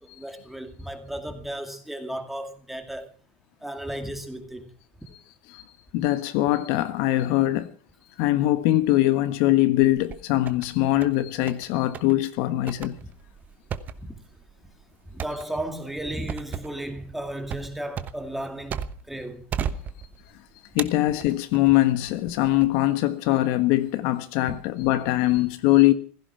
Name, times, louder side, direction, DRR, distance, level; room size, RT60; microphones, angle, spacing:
voice 1, 0.0-3.1 3.6-4.7 13.0-13.1 14.0-14.2 15.1-19.8 24.5-24.6, right 1 dB, 5° right, 2.1 m, -35 dB
voice 2, 5.9-7.7 8.2-12.9 20.7-25.9, left 16 dB, 60° left, 1.4 m, -22 dB
sound 1, 9.8-10.7 11.0-11.7 11.9-12.2 12.7-19.2 19.5-20.3 20.8-21.7 22.3-22.7, right 8 dB, 25° right, 1.0 m, -35 dB
16.0 x 15.0 x 5.8 m
supercardioid pair, 160°, 7 cm